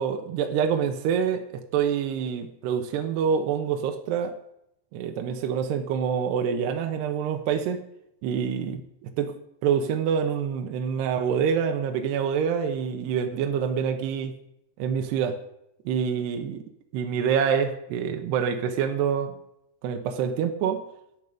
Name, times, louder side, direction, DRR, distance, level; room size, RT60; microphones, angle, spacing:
voice 1, 0.0-4.4 4.9-7.8 8.2-9.4 9.6-14.4 14.8-15.4 15.9-16.6 16.9-19.4 19.8-20.8, right 7 dB, 70° right, 5 dB, 3.1 m, -26 dB
18.0 x 12.0 x 5.1 m, 0.79 s
omnidirectional pair, 5.3 m